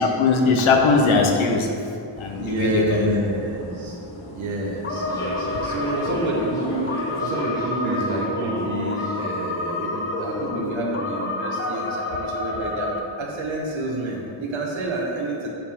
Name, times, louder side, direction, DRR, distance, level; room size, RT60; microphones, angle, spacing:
voice 1, 0.0-1.8 2.2-3.1, left 4 dB, 85° left, 3 dB, 0.8 m, -20 dB
sound 1, 2.1-7.3, left 2 dB, 50° left, 1.1 m, -39 dB
voice 2, 2.4-4.0 4.3-6.9 7.2-15.5, right 2 dB, 80° right, -2 dB, 1.3 m, -28 dB
sound 2, 4.8-13.0, left 2 dB, 30° left, 0.4 m, -29 dB
Human voice / Subway metro underground, 4.9-10.5, right 1 dB, 5° left, 1.4 m, -35 dB
7.3 x 4.7 x 3.6 m, 2.7 s
wide cardioid pair, 115°, 47 cm